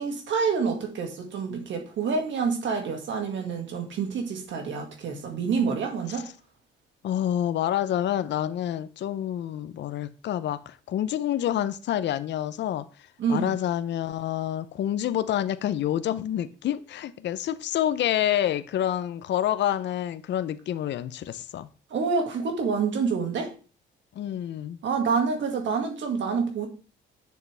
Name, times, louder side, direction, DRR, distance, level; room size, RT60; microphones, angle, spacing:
voice 1, 0.0-6.3 13.2-13.5 21.9-23.5 24.8-26.7, right 5 dB, 70° right, 2.0 m, -27 dB
voice 2, 7.0-21.7 24.1-24.8, left 11 dB, 65° left, 0.6 m, -28 dB
8.3 x 6.7 x 3.4 m
cardioid pair, 90°, 20 cm